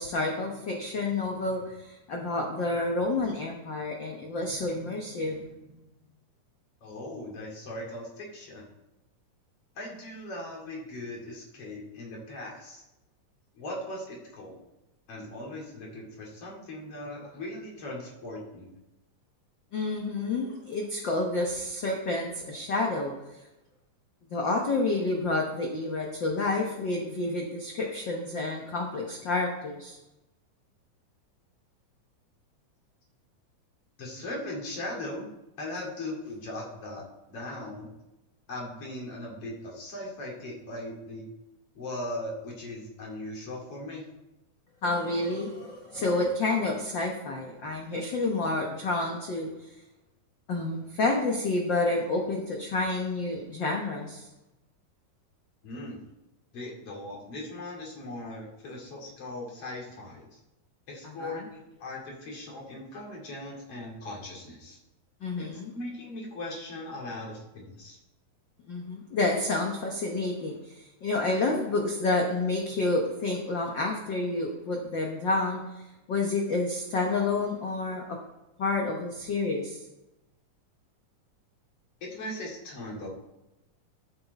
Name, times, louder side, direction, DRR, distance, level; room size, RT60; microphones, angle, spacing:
voice 1, 0.0-5.4 19.7-23.4 24.3-30.0 44.8-49.5 50.5-54.3 61.0-61.5 65.2-65.7 68.7-75.8 76.1-78.2 78.6-79.8, left 2 dB, 75° left, 0 dB, 1.0 m, -29 dB
voice 2, 6.8-8.6 9.7-12.8 13.5-14.6 15.1-18.7 34.0-35.3 35.6-37.0 37.3-37.9 38.5-41.2 41.7-44.0 55.6-56.0 56.5-60.4 60.9-64.8 65.4-65.5 65.7-68.0 82.0-83.1, left 1 dB, 45° left, -2 dB, 3.2 m, -39 dB
12.5 x 6.6 x 4.0 m, 0.96 s
omnidirectional pair, 3.8 m